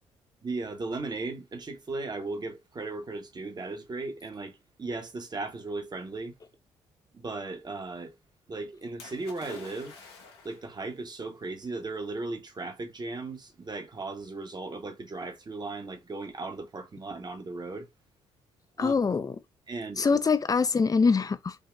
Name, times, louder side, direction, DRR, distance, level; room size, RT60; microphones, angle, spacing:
voice 1, 0.4-4.5 4.8-6.3 7.1-8.1 8.5-9.9 10.4-17.9 18.8-19.0 19.7-20.2, right 3 dB, 30° right, 1.3 m, -36 dB
Splash splatter, 9.0-10.8 11.7-11.8, left 4 dB, 85° left, 1.1 m, -48 dB
voice 2, 18.8-19.4 20.0-21.6, left 5 dB, 30° left, 0.6 m, -24 dB
5.2 x 2.8 x 2.4 m
hypercardioid pair, 45°, 13 cm